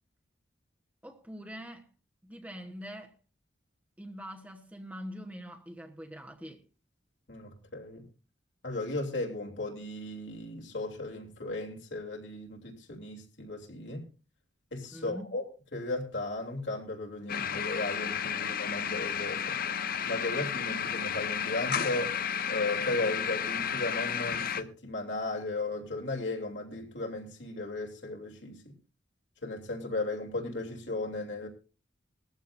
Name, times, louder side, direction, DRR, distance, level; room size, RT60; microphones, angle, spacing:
voice 1, 1.0-1.9 2.2-3.1 4.0-6.6 14.9-15.3, equal, 10° right, 1.1 m, -43 dB
voice 2, 7.3-8.1 8.6-14.0 14.7-15.4 15.7-19.6 20.1-22.2 22.5-28.7 29.4-31.5, left 2 dB, 70° left, 3.2 m, -35 dB
sound 1, 17.3-24.6, left 8 dB, 50° left, 0.7 m, -32 dB
20.0 x 14.5 x 2.6 m
head